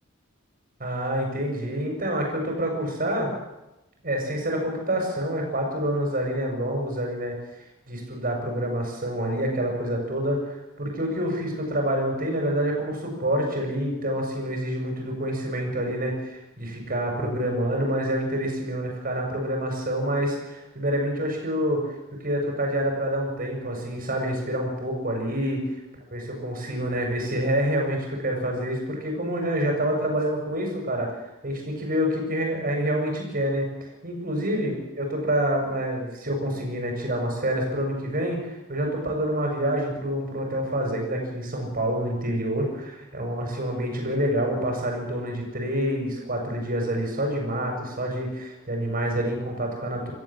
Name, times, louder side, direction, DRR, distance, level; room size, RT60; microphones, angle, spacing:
voice 1, 0.8-3.3 4.0-7.4 7.9-21.9 22.2-25.6 26.1-31.2 31.4-33.7 34.0-50.1, equal, 45° right, 2 dB, 6.9 m, -27 dB
27.0 x 14.0 x 7.6 m, 0.98 s
head